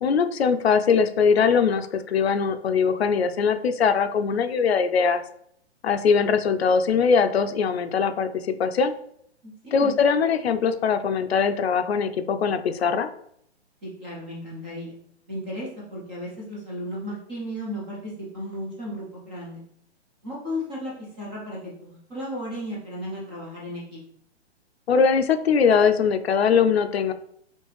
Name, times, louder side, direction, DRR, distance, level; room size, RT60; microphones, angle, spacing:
voice 1, 0.0-5.2 5.8-8.9 9.7-13.1 24.9-27.1, left 6 dB, 65° left, 9 dB, 0.5 m, -21 dB
voice 2, 9.6-9.9 13.8-14.9 15.3-19.6 20.2-24.0, equal, 10° right, -5 dB, 0.3 m, -34 dB
4.4 x 2.8 x 3.1 m, 0.70 s
figure-of-eight pair, 130°, 34 cm